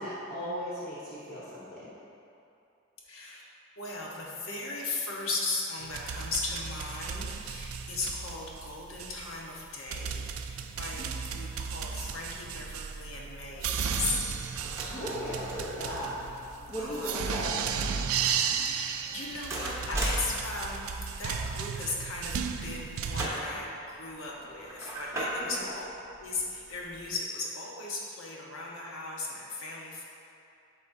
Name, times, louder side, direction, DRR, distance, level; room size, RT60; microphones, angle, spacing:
voice 1, 0.0-1.9 11.0-11.1 14.9-16.2 16.7-17.9 25.5-25.6, equal, 35° left, -10 dB, 1.0 m, -36 dB
voice 2, 3.0-3.5 3.8-14.2 16.8-17.6 18.6-20.9 21.2-25.9 26.2-30.0, left 3 dB, 80° left, -3 dB, 1.1 m, -37 dB
sound 1, 5.8-23.3, right 7 dB, 85° right, 0.4 m, -35 dB
sound 2, 12.4-27.1, right 1 dB, 15° right, 0.9 m, -40 dB
11.0 x 4.1 x 2.7 m, 2.7 s
head